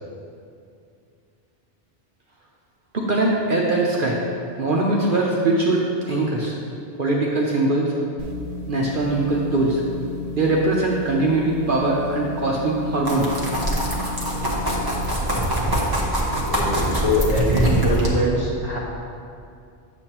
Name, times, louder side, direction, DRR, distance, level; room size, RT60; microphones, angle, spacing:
voice 1, 2.9-4.2 4.6-6.5 7.0-7.9 8.7-9.8 10.3-13.3, right 2 dB, 50° right, -3 dB, 0.8 m, -21 dB
sound 1, 8.2-15.0, left 3 dB, 80° right, 1.1 m, -33 dB
sound 2, 13.0-18.1, right 1 dB, 20° right, 1.1 m, -23 dB
voice 2, 16.5-18.8, left 1 dB, 35° left, -7 dB, 1.7 m, -23 dB
8.3 x 7.1 x 2.9 m, 2.4 s
omnidirectional pair, 1.2 m